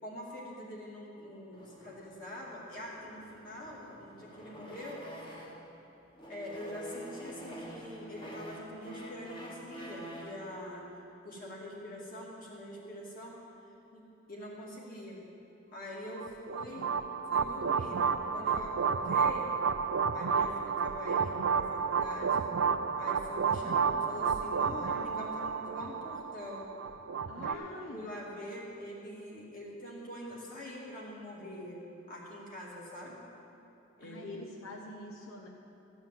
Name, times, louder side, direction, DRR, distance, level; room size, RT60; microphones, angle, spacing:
voice 1, 0.0-5.5 6.3-10.9 11.2-13.4 13.9-14.0 14.3-15.2 15.7-17.0 17.3-19.5 20.1-22.5 23.0-26.7 27.4-27.6 27.9-31.8 32.1-33.2 34.0-34.4, left 1 dB, 40° left, -5 dB, 2.5 m, -44 dB
sound 1, 1.5-5.7 6.1-10.5, right 1 dB, 25° left, 1.3 m, -47 dB
voice 2, 11.3-11.9 23.7-23.9 27.3-28.1 34.0-35.5, left 1 dB, 85° left, 0 dB, 1.0 m, -46 dB
sound 2, 16.2-27.5, right 6 dB, 70° right, 0.4 m, -31 dB
14.5 x 5.5 x 9.1 m, 2.9 s
head